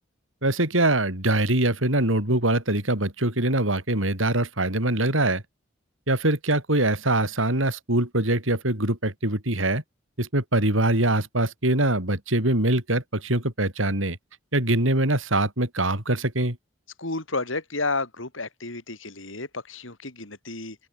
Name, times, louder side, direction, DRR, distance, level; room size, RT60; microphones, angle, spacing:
voice 1, 0.4-5.4 6.1-9.8 10.2-14.2 14.5-16.6, right 1 dB, 85° right, 5.9 m, -23 dB
voice 2, 17.0-20.8, left 3 dB, 85° left, 4.5 m, -31 dB
open air
head